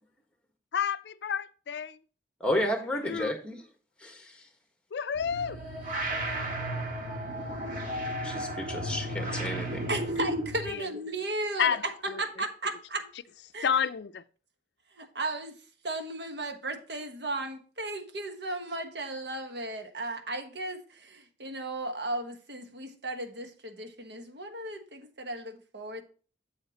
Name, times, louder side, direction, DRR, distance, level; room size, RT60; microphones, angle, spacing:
voice 1, 0.7-2.0 3.0-3.3 4.9-5.6 10.7-10.9 11.6-12.2 13.6-14.2, left 7 dB, 75° left, 0.4 m, -30 dB
voice 2, 2.4-3.6 4.0-4.4 8.2-9.9, left 1 dB, 5° left, 1.4 m, -32 dB
sound 1, 5.1-10.7, right 1 dB, 50° right, 1.7 m, -33 dB
voice 3, 9.9-13.1 13.5-13.7 15.0-15.5 15.8-26.0, right 2 dB, 75° right, 1.3 m, -35 dB
7.9 x 7.9 x 2.9 m
head